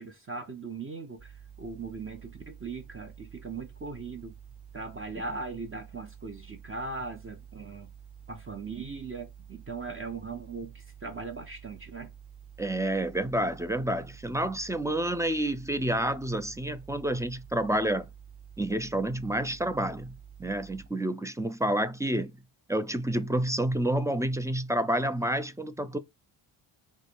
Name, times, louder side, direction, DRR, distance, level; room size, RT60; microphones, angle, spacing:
voice 1, 0.0-1.3 1.6-4.4 4.7-7.9 8.3-12.1, right 4 dB, 25° right, 0.9 m, -39 dB
sound 1, 1.2-20.9, right 8 dB, 50° right, 2.6 m, -50 dB
voice 2, 12.6-18.1 18.6-20.1 20.4-22.3 22.7-26.0, right 1 dB, 5° right, 0.5 m, -29 dB
4.6 x 2.3 x 4.6 m
cardioid pair, 75°, 48 cm